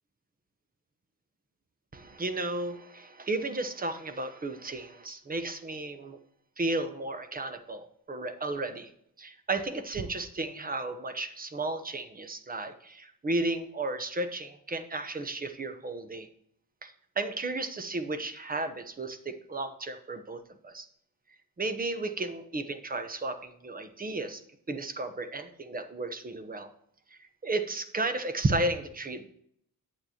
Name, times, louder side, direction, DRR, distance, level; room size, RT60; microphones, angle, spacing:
voice 1, 1.9-6.2 6.6-8.9 9.2-16.3 16.8-20.9 21.6-24.4 24.7-26.7 27.1-29.3, right 2 dB, 25° right, 10 dB, 0.8 m, -33 dB
8.6 x 8.1 x 2.9 m, 0.70 s
cardioid pair, 110°, 35 cm